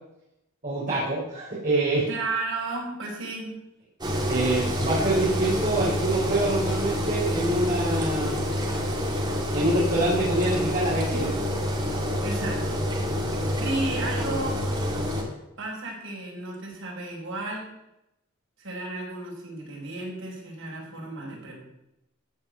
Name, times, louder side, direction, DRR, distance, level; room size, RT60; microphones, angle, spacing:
voice 1, 0.6-2.1 4.3-8.4 9.5-11.3, right 2 dB, 40° right, -8 dB, 3.6 m, -25 dB
voice 2, 2.1-3.6 12.2-12.8 13.5-14.6 15.6-17.7 18.6-21.5, right 2 dB, 65° right, -3 dB, 5.0 m, -33 dB
Engine, 4.0-15.2, equal, 20° right, 2.3 m, -27 dB
14.5 x 5.3 x 8.0 m, 0.88 s
head